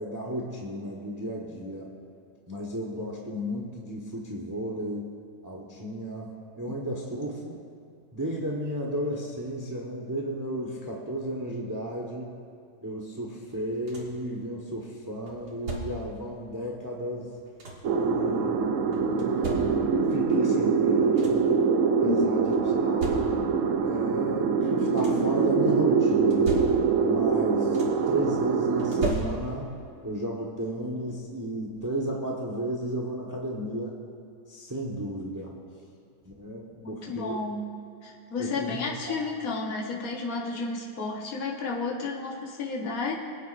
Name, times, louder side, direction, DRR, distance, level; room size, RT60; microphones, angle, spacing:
voice 1, 0.0-1.9 2.5-5.1 5.4-7.6 8.1-12.3 12.8-17.3 17.9-19.8 20.1-21.4 21.9-22.6 22.8-23.2 23.8-26.5 27.0-27.8 28.1-29.7 30.0-34.0 34.5-35.5 36.3-37.4 38.4-39.2, right 1 dB, 15° right, -2 dB, 1.0 m, -33 dB
sound 1, 13.5-14.3 15.3-16.2 17.1-18.0 18.9-20.1 20.7-20.8 21.0-21.6 22.5-23.7 24.6-25.4 26.1-27.1 27.4-28.2 28.8-29.8 31.1-31.2 31.7-31.9, right 2 dB, 85° right, 2.2 m, -37 dB
sound 2, 17.8-29.1, right 5 dB, 65° right, 0.9 m, -24 dB
voice 2, 22.0-22.6 36.8-37.7 38.0-43.1, left 3 dB, 65° left, -2 dB, 1.8 m, -32 dB
23.0 x 9.3 x 2.6 m, 2.6 s
omnidirectional pair, 1.7 m